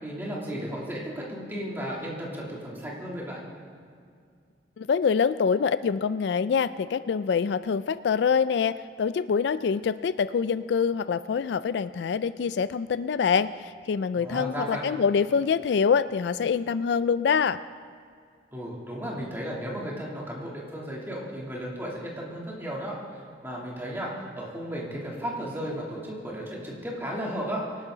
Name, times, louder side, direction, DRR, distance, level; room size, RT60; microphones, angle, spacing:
voice 1, 0.0-3.4 14.1-14.9 18.5-27.6, equal, 10° right, -4 dB, 2.9 m, -34 dB
voice 2, 4.8-17.6, left 6 dB, 60° left, 15 dB, 0.3 m, -25 dB
24.5 x 12.0 x 3.9 m, 2.2 s
head